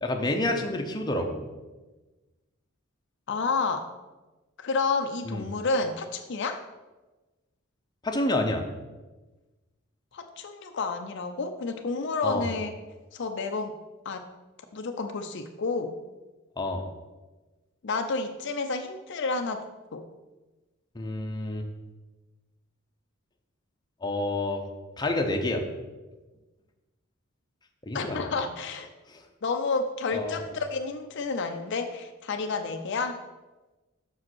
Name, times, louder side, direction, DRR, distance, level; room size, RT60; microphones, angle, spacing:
voice 1, 0.0-1.4 5.3-5.4 8.0-8.6 12.2-12.5 16.6-16.8 20.9-21.6 24.0-24.6 25.0-25.6 27.8-28.3 29.1-29.2 30.1-30.4, left 1 dB, 20° left, 3 dB, 0.8 m, -28 dB
voice 2, 3.3-3.9 4.6-6.6 10.1-12.7 13.1-13.7 14.0-14.2 14.7-15.9 17.8-19.6 19.9-20.0 27.9-28.9 29.4-33.2, left 4 dB, 60° left, 6 dB, 0.5 m, -30 dB
6.4 x 5.1 x 6.1 m, 1.2 s
head